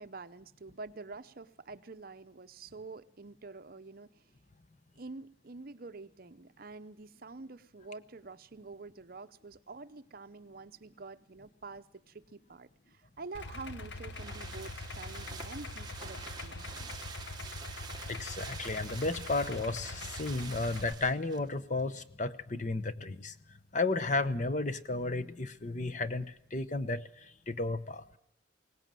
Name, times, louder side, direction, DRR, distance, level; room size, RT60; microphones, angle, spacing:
voice 1, 0.0-4.3 5.0-16.9, right 3 dB, 50° right, 12 dB, 0.7 m, -47 dB
Idling, 13.3-20.9, left 2 dB, 60° left, 1.1 m, -43 dB
sound 1, 13.3-21.5 21.8-21.9, right 6 dB, 20° right, 1.2 m, -47 dB
voice 2, 18.1-23.3 23.7-28.2, left 3 dB, 40° left, 13 dB, 0.9 m, -33 dB
22.0 x 18.5 x 7.6 m, 0.80 s
head